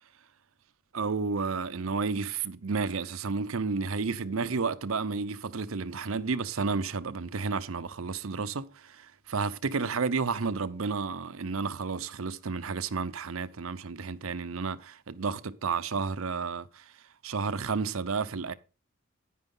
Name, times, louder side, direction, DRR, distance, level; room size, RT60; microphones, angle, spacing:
voice 1, 0.9-16.8 17.2-18.5, right 4 dB, 85° right, 0.7 m, -31 dB
10.0 x 9.3 x 3.8 m
head